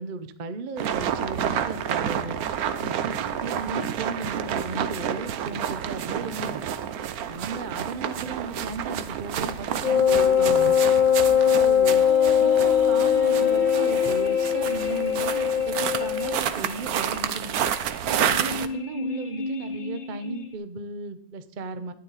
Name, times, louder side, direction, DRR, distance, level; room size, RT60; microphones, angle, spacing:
voice 1, 0.0-2.4 2.8-6.6 7.3-10.8 11.3-12.0 12.4-17.5 18.2-21.9, right 3 dB, 80° right, 11 dB, 0.4 m, -35 dB
sound 1, 0.8-18.7, right 9 dB, 65° right, 1.0 m, -30 dB
Wind instrument woodwind instrument, 9.8-16.5, left 8 dB, 85° left, 0.4 m, -21 dB
sound 2, 10.1-20.5, left 3 dB, 35° left, 0.9 m, -35 dB
12.5 x 9.8 x 4.1 m, 0.63 s
omnidirectional pair, 2.1 m